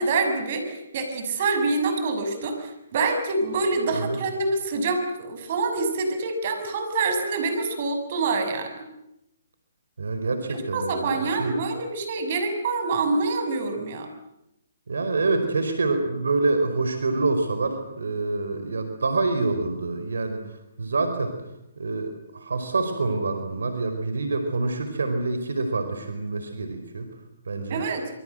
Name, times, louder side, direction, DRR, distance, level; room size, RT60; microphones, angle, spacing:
voice 1, 0.0-8.8 10.5-14.1 27.7-28.1, right 3 dB, 50° right, 7 dB, 6.5 m, -26 dB
voice 2, 10.0-11.5 14.9-20.4 20.8-21.3 21.8-27.1 27.5-27.8, right 3 dB, 80° right, 7 dB, 4.7 m, -26 dB
27.0 x 24.5 x 7.9 m, 0.86 s
hypercardioid pair, 140°, 0 cm